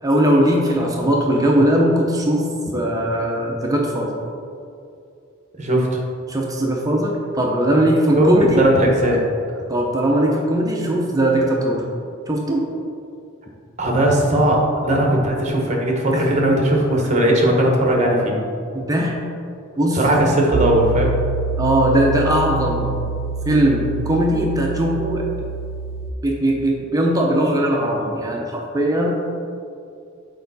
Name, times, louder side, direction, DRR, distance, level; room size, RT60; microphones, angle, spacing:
voice 1, 0.0-4.2 6.3-8.6 9.7-11.8 12.3-12.7 16.1-16.4 18.7-19.2 19.8-20.0 21.6-23.0 23.4-25.3 26.2-29.2, right 1 dB, 15° right, -1 dB, 0.6 m, -19 dB
voice 2, 5.6-6.0 8.2-8.3 8.6-9.2 9.5-9.6 13.8-18.4 19.9-21.1, right 1 dB, 35° right, 0 dB, 1.0 m, -18 dB
Piano, 20.5-26.1, right 4 dB, 75° right, 0.4 m, -26 dB
6.5 x 4.7 x 4.0 m, 2.5 s
head